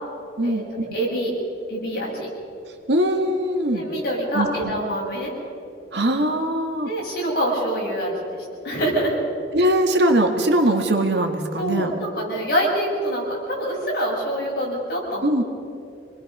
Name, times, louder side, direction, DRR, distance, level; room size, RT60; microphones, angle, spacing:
voice 1, 0.4-1.3 1.7-2.3 3.7-5.3 6.8-9.2 11.6-15.5, equal, 55° left, -4 dB, 7.6 m, -25 dB
voice 2, 2.9-3.9 4.3-4.7 5.9-6.9 9.5-11.9 15.2-15.4, right 1 dB, 70° right, 4 dB, 1.9 m, -21 dB
28.5 x 20.5 x 5.6 m, 2.7 s
head